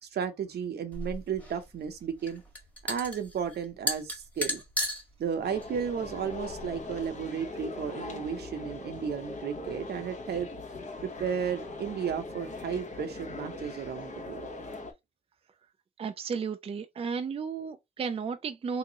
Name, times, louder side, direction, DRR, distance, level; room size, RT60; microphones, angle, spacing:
voice 1, 0.0-2.4 2.9-4.6 5.2-10.5 11.0-14.5, right 7 dB, 80° right, 0.9 m, -33 dB
sound 1, 0.9-7.1, equal, 10° left, 1.4 m, -36 dB
sound 2, 5.4-14.9, left 2 dB, 45° left, 0.9 m, -41 dB
voice 2, 16.0-18.8, right 6 dB, 35° right, 0.4 m, -33 dB
3.5 x 2.9 x 2.8 m
wide cardioid pair, 140°, 17 cm